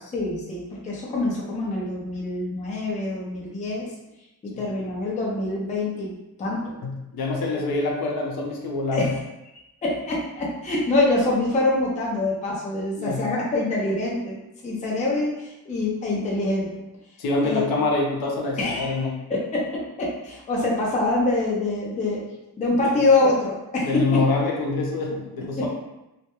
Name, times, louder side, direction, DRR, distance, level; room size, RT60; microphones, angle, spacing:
voice 1, 0.1-3.9 4.4-6.1 6.4-6.6 7.6-7.7 8.9-9.1 9.8-14.4 14.6-16.8 17.4-17.6 18.6-19.0 19.3-19.6 20.0-22.2 22.6-24.2 25.6-25.7, left 2 dB, 20° left, -4 dB, 0.4 m, -25 dB
voice 2, 6.8-9.1 13.0-13.2 17.2-19.1 23.8-25.7, left 3 dB, 65° left, -1 dB, 0.6 m, -25 dB
2.2 x 2.1 x 2.9 m, 0.94 s
cardioid pair, 145°, 39 cm